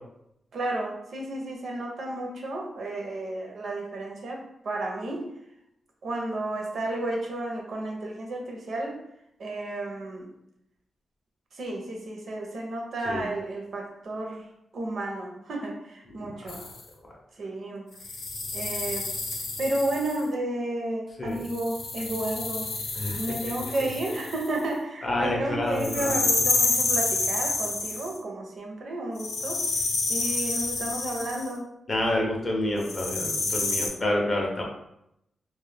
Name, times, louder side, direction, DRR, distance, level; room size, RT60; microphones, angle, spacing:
voice 1, 0.5-5.2 6.0-9.0 9.4-10.3 11.5-14.4 14.7-16.6 17.4-17.9 18.5-19.1 19.6-22.7 23.2-29.6 30.1-31.7, right 1 dB, 55° right, 1 dB, 0.5 m, -32 dB
voice 2, 16.2-16.6 21.2-21.4 23.0-23.2 23.6-23.9 25.0-26.2 31.9-34.6, left 1 dB, 30° left, -1 dB, 0.5 m, -28 dB
sound 1, 16.5-16.8 18.0-20.2 21.4-24.6 25.8-28.2 29.2-31.5 32.8-33.9, left 3 dB, 80° left, 0.5 m, -29 dB
2.2 x 2.0 x 3.2 m, 0.79 s
wide cardioid pair, 170°, 0 cm